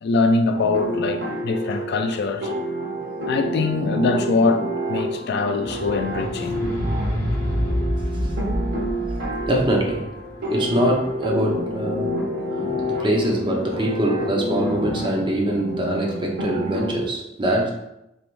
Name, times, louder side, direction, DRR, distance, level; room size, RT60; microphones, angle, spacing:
voice 1, 0.0-2.6 3.2-6.5, left 3 dB, 60° left, 0.4 m, -23 dB
sound 1, 0.5-17.0, equal, 65° right, 1.4 m, -29 dB
sound 2, 5.6-12.1 12.9-13.0, equal, 10° left, 0.9 m, -28 dB
voice 2, 9.5-10.1 10.5-12.1 12.6-17.7, right 1 dB, 25° right, 0.7 m, -23 dB
4.4 x 3.5 x 2.5 m
head